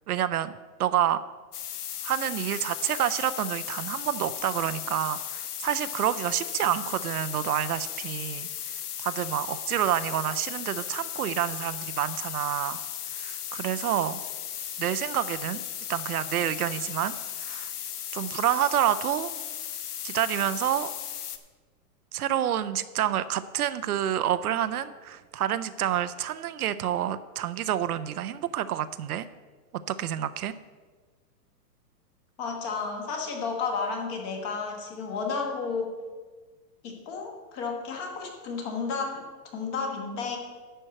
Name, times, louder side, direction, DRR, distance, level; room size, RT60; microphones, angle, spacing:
voice 1, 0.1-0.5 0.8-1.2 2.0-8.5 9.0-12.8 13.2-14.2 14.8-15.6 15.9-17.1 17.4-17.7 18.1-19.3 20.0-20.9 22.1-29.3 29.9-30.5, right 11 dB, 65° right, 13 dB, 0.6 m, -28 dB
sound 1, 1.5-21.4, left 10 dB, 70° left, 1.0 m, -36 dB
voice 2, 32.4-35.9 36.8-39.2 39.5-40.4, left 5 dB, 25° left, 2 dB, 1.2 m, -32 dB
11.0 x 4.5 x 7.6 m, 1.4 s
hypercardioid pair, 165°, 48 cm